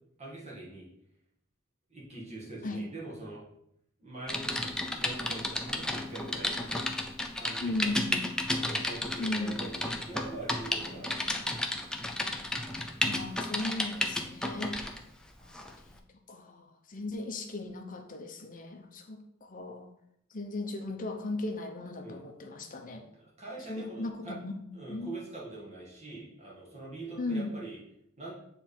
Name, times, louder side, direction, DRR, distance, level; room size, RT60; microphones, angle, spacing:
voice 1, 0.2-0.9 1.9-3.4 4.0-6.6 7.4-7.8 8.5-11.9 22.0-22.2 23.2-24.4 24.7-27.8 28.2-28.3, right 2 dB, 35° right, -4 dB, 1.7 m, -43 dB
Typing, 4.3-15.0 15.5-15.7, left 1 dB, 5° left, 0.5 m, -33 dB
voice 2, 7.6-8.3 9.2-9.6 13.0-14.7 15.4-15.6 15.8-16.0 16.3-19.9 20.3-23.0 23.7-24.6 24.9-25.2 27.2-27.6, left 2 dB, 40° left, 4 dB, 0.8 m, -36 dB
7.6 x 3.4 x 4.3 m, 0.74 s
head